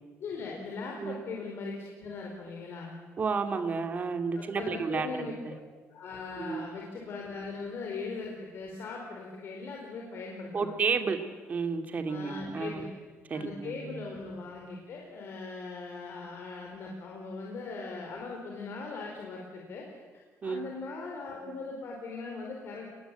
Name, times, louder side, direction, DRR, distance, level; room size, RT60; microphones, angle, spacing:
voice 1, 0.2-3.0 4.3-5.6 5.9-10.7 12.1-12.9 13.3-19.9 20.4-22.9, left 4 dB, 55° left, 0 dB, 4.8 m, -40 dB
voice 2, 3.2-5.1 5.4-5.5 6.4-6.7 10.5-11.2 11.5-12.9 13.3-14.0 20.4-20.7, right 5 dB, 30° right, 7 dB, 2.3 m, -31 dB
29.5 x 21.5 x 9.2 m, 1.5 s
cardioid pair, 165°, 5 cm